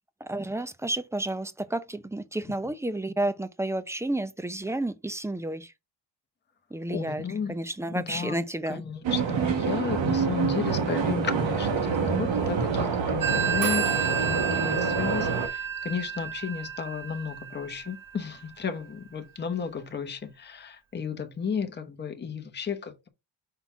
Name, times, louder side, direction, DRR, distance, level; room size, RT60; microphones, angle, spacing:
voice 1, 0.2-5.7 6.7-7.2 7.5-8.8, right 1 dB, 5° right, 0.5 m, -31 dB
voice 2, 6.9-7.5 7.9-8.4 8.7-23.1, left 6 dB, 25° left, 0.9 m, -33 dB
sound 1, 9.0-15.5, right 5 dB, 80° right, 1.7 m, -27 dB
Telephone, 13.2-18.5, right 7 dB, 45° right, 1.3 m, -31 dB
5.7 x 4.0 x 4.5 m
cardioid pair, 110°, 44 cm